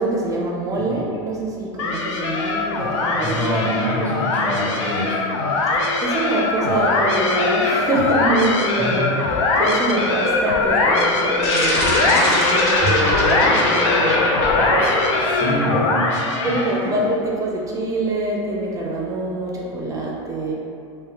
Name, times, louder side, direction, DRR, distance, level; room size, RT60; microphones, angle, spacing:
voice 1, 0.0-3.6 6.0-9.3 9.6-14.9 15.4-15.8 16.4-20.5, right 2 dB, 20° right, -3 dB, 0.4 m, -25 dB
sound 1, 1.8-16.9, left 3 dB, 80° left, 0.4 m, -21 dB
voice 2, 3.2-5.2 8.8-9.1 14.4-14.8 15.3-16.1 16.4-16.5 16.8-17.0, equal, 10° left, -7 dB, 0.7 m, -26 dB
sound 2, 11.4-16.1, left 1 dB, 60° left, 0.8 m, -23 dB
Bowed string instrument, 12.8-17.1, right 2 dB, 30° left, 1.3 m, -34 dB
3.3 x 2.1 x 2.9 m, 2.5 s
supercardioid pair, 115°, 15 cm